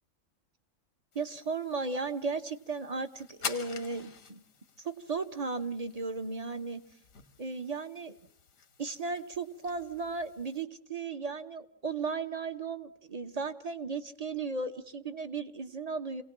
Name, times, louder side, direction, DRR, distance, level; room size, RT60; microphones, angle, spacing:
sound 1, 1.1-10.6, left 6 dB, 85° left, 1.8 m, -47 dB
voice 1, 1.1-4.4 4.8-6.8 7.4-8.2 8.8-16.2, right 4 dB, 30° right, 8 dB, 1.1 m, -35 dB
28.0 x 18.0 x 7.4 m, 0.64 s
omnidirectional pair, 1.3 m